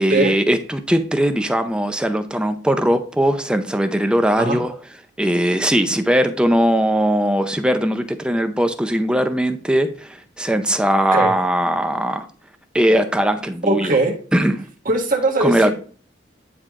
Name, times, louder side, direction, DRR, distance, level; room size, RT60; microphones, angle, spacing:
voice 1, 0.0-4.7 5.2-12.3 12.7-14.0 14.3-14.6 15.4-15.7, equal, 5° right, 8 dB, 0.6 m, -19 dB
voice 2, 13.7-14.2 14.8-15.7, right 2 dB, 50° right, 1 dB, 1.5 m, -19 dB
9.7 x 3.3 x 3.7 m, 0.42 s
head